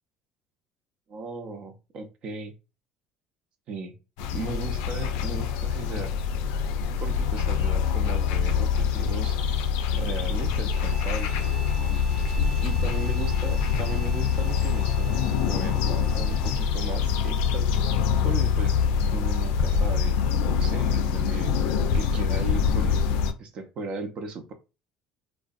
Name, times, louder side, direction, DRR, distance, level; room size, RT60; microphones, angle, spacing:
voice 1, 1.1-2.5 3.7-4.0 4.3-6.1 7.0-9.4 9.9-11.4 12.6-17.7 18.2-18.8 19.1-20.2 20.4-21.6 21.9-24.5, right 3 dB, 55° right, 7 dB, 0.6 m, -36 dB
sound 1, 4.2-23.3, left 6 dB, 80° left, 0.3 m, -25 dB
sound 2, 10.7-16.9, equal, ahead, 0.7 m, -44 dB
2.5 x 2.1 x 2.4 m, 0.29 s
supercardioid pair, 95°, 2 cm